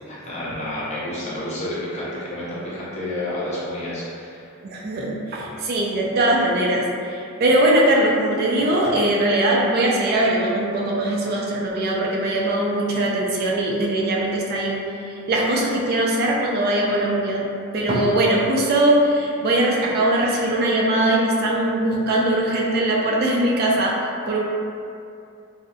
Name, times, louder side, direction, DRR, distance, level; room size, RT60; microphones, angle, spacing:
voice 1, 0.1-4.5, left 1 dB, 35° left, -8 dB, 0.6 m, -30 dB
voice 2, 4.6-14.8 15.1-17.5 17.7-24.4, right 1 dB, 45° right, -2 dB, 0.3 m, -21 dB
2.6 x 2.0 x 2.5 m, 2.5 s
head